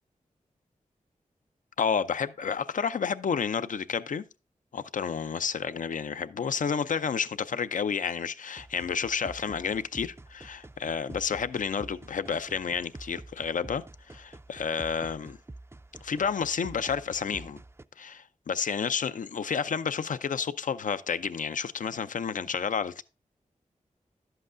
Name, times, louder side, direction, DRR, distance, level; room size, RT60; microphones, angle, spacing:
voice 1, 1.8-4.2 4.7-15.4 16.0-17.6 18.0-23.0, left 6 dB, 70° left, 0.5 m, -30 dB
sound 1, 8.6-17.8, right 2 dB, 20° right, 0.4 m, -47 dB
11.0 x 7.8 x 2.5 m
cardioid pair, 40°, 14 cm